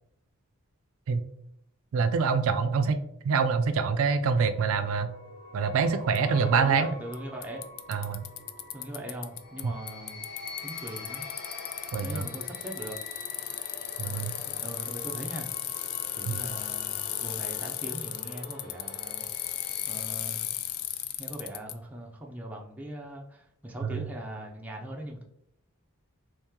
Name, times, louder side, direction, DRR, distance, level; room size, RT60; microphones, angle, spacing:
voice 1, 1.9-3.0 3.2-5.1 5.5-6.9 7.9-8.2 9.6-9.7 11.9-12.3 14.0-14.3 16.3-16.4 23.8-24.0, right 5 dB, 70° right, 9 dB, 0.3 m, -25 dB
sound 1, 4.0-20.8, left 3 dB, 50° left, 0.8 m, -45 dB
Bicycle, 6.1-6.2 7.1-7.2 7.4-9.6 9.9-21.7, left 13 dB, 70° left, 0.3 m, -35 dB
voice 2, 6.3-7.7 8.7-10.2 10.6-11.3 12.0-13.0 14.0-15.5 16.2-19.3 19.9-20.5 21.2-25.2, right 1 dB, 5° right, -1 dB, 0.4 m, -40 dB
3.1 x 2.9 x 3.6 m, 0.73 s
head